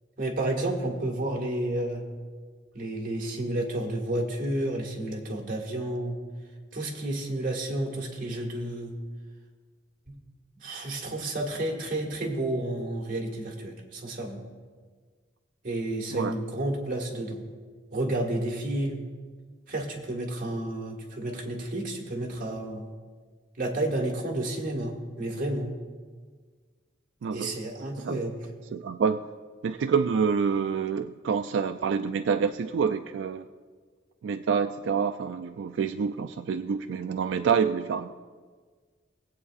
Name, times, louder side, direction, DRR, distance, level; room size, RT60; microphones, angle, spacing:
voice 1, 0.2-2.0 2.7-6.1 6.7-8.9 10.1-10.2 10.6-14.4 15.6-17.4 17.9-19.0 19.7-22.9 23.6-25.7 27.3-28.3, right 1 dB, 50° right, 0 dB, 1.7 m, -31 dB
voice 2, 27.2-27.6 28.0-28.2 28.7-29.2 29.6-33.4 34.2-38.1, right 6 dB, 90° right, 8 dB, 0.3 m, -27 dB
19.0 x 8.3 x 2.4 m, 1.6 s
head